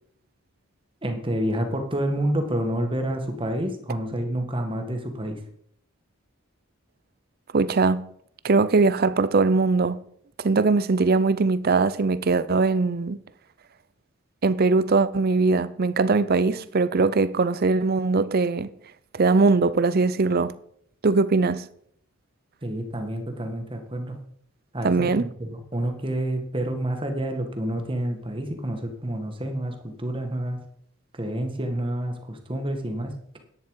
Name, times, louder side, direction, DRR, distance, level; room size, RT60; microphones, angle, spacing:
voice 1, 1.0-5.4 22.6-24.2 24.7-30.6 31.1-33.4, right 1 dB, 25° right, 1.6 m, -29 dB
voice 2, 7.5-8.1 8.4-10.0 10.4-13.2 14.4-18.7 19.1-20.6 21.0-21.7 24.8-25.3, right 3 dB, 45° right, 0.5 m, -21 dB
10.5 x 9.7 x 4.8 m
head